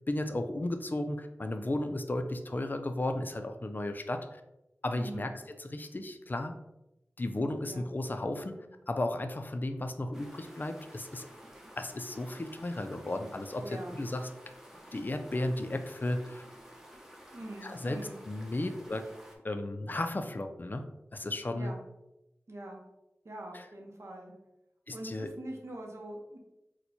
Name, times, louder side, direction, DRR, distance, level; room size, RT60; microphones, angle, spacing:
voice 1, 0.1-4.4 4.8-5.3 5.6-6.5 7.2-11.3 11.8-14.3 14.9-16.4 17.6-18.0 18.3-19.1 19.4-20.8 21.1-21.7 23.5-23.6 24.9-25.3, left 1 dB, 40° left, 7 dB, 0.3 m, -34 dB
voice 2, 5.0-5.3 7.6-7.9 13.6-14.0 17.3-18.2 21.5-21.8 22.5-22.8 23.2-24.3 24.9-26.4, right 1 dB, 70° right, 0 dB, 0.7 m, -43 dB
sound 1, 10.1-19.4, equal, 10° right, 0.6 m, -52 dB
4.3 x 2.1 x 2.7 m, 0.90 s
wide cardioid pair, 65°, 5 cm